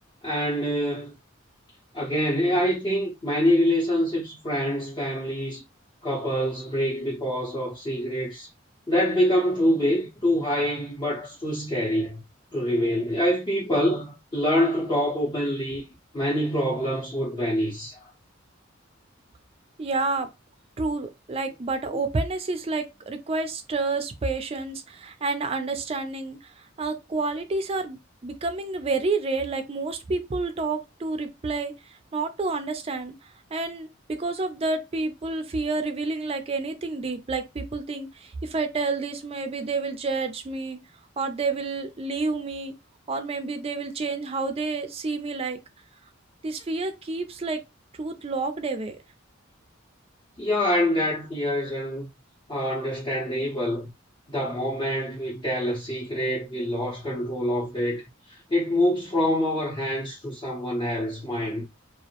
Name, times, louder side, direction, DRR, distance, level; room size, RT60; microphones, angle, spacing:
voice 1, 0.2-1.1 1.9-5.6 6.0-8.5 8.9-12.2 12.5-15.8 16.1-18.1 21.9-22.0 50.4-52.1 52.5-53.9 54.3-58.0 58.3-61.6, equal, 25° left, 0.6 m, -25 dB
voice 2, 19.8-20.3 20.8-26.4 26.8-31.7 32.1-33.2 33.5-40.8 41.2-42.7 43.1-45.6 46.4-47.6 48.0-49.0, right 3 dB, 30° right, 0.4 m, -29 dB
2.4 x 2.0 x 2.8 m
head